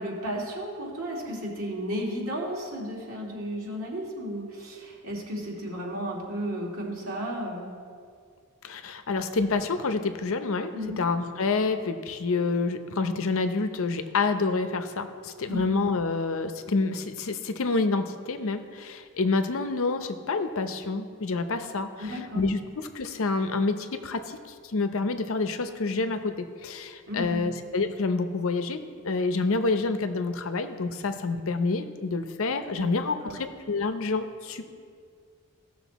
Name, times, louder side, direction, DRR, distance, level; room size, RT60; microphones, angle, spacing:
voice 1, 0.0-7.7 10.7-11.0 15.5-15.6 22.0-22.4 27.1-27.4 32.7-33.4, equal, 70° right, -3 dB, 2.6 m, -34 dB
voice 2, 8.6-34.6, left 3 dB, 65° left, 9 dB, 0.7 m, -28 dB
16.0 x 6.4 x 4.1 m, 2.2 s
head